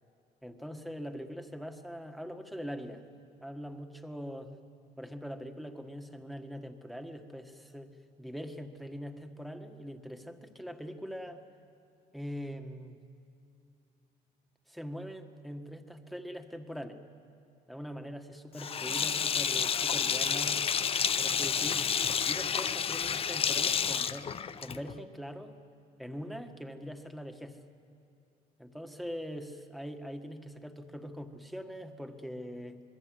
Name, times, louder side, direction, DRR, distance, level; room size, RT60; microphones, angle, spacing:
voice 1, 0.4-3.0 3.4-4.5 5.0-7.9 8.2-11.4 12.1-13.0 14.7-17.0 17.7-20.6 21.2-21.8 22.3-25.5 26.0-27.6 28.6-32.8, equal, ahead, 5 dB, 1.7 m, -42 dB
Sink (filling or washing), 18.6-25.0, left 7 dB, 35° left, 0.6 m, -30 dB
27.0 x 21.5 x 7.8 m, 2.7 s
cardioid pair, 110°, 17 cm